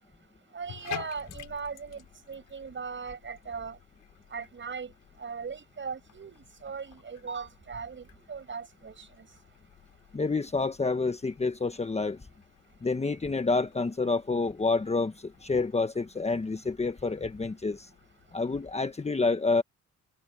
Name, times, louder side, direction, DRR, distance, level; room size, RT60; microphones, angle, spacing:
voice 1, 0.5-3.8 4.3-4.9 5.2-9.3, right 5 dB, 40° right, 6.8 m, -39 dB
Bathtub (filling or washing), 0.6-18.9, left 12 dB, 75° left, 6.1 m, -51 dB
voice 2, 10.1-12.2 12.8-15.1 15.4-17.9 18.3-19.6, left 3 dB, 20° left, 1.3 m, -28 dB
cardioid pair, 90°, 30 cm